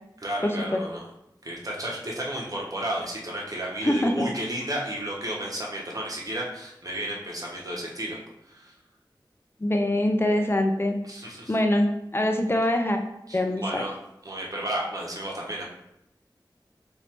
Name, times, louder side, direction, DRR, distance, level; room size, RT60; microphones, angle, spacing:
voice 1, 0.2-1.0 1.4-8.2 8.5-8.7 11.0-11.5 13.3-13.9 14.2-15.6, right 1 dB, 45° right, -3 dB, 1.1 m, -32 dB
voice 2, 3.8-4.2 9.6-11.0 11.5-13.0 13.3-13.8, left 1 dB, 30° left, 4 dB, 0.5 m, -24 dB
3.2 x 2.7 x 4.4 m, 0.82 s
wide cardioid pair, 60°, 8 cm